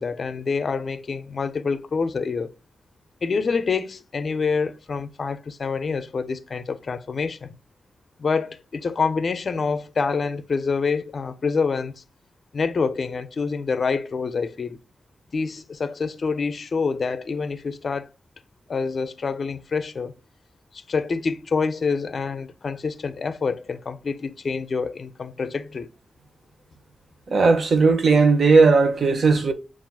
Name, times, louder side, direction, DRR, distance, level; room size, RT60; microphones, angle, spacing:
voice 1, 0.0-2.5 3.2-7.5 8.2-12.0 12.5-14.8 15.3-18.1 18.7-20.1 20.7-25.9, left 5 dB, 50° left, 0.5 m, -26 dB
voice 2, 27.3-29.5, right 4 dB, 60° right, 0.8 m, -17 dB
7.3 x 2.4 x 2.3 m
wide cardioid pair, 115°, 0 cm